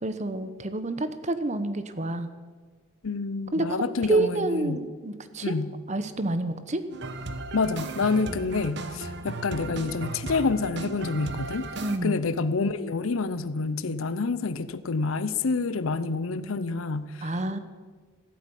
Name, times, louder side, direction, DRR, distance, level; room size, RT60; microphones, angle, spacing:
voice 1, 0.0-2.3 3.5-5.5 5.9-6.8 11.8-12.2 17.2-17.6, right 2 dB, 35° right, 11 dB, 0.9 m, -28 dB
voice 2, 3.0-4.8 5.4-5.7 7.5-11.7 12.0-17.3, left 4 dB, 75° left, 14 dB, 0.7 m, -28 dB
sound 1, 6.9-12.0, right 3 dB, 55° right, 1.1 m, -36 dB
14.5 x 8.3 x 9.9 m, 1.5 s
head